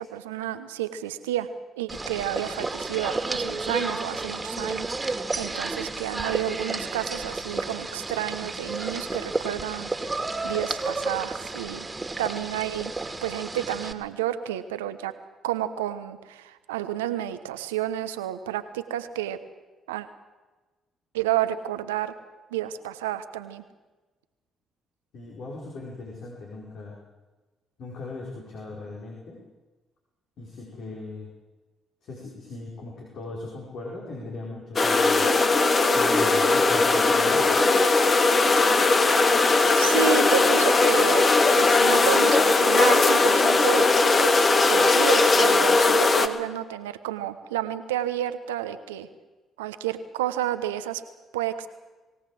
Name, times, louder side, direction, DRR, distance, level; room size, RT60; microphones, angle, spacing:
voice 1, 0.0-1.5 1.8-10.2 10.4-11.9 12.2-12.9 13.2-15.1 15.4-19.4 19.9-20.1 21.1-22.1 22.5-23.6 39.8-41.2 41.6-49.1 49.6-51.0 51.3-51.7, right 12 dB, 85° right, 11 dB, 1.0 m, -30 dB
sound 1, 1.9-13.9, right 3 dB, 25° right, 2.3 m, -32 dB
voice 2, 25.1-27.0 27.8-29.4 30.4-31.3 32.0-35.3 35.9-37.6, left 2 dB, 65° left, -3 dB, 5.1 m, -38 dB
sound 2, 34.8-46.3, left 3 dB, 40° left, 2.0 m, -19 dB
22.0 x 17.0 x 7.7 m, 1.2 s
hypercardioid pair, 45°, 0 cm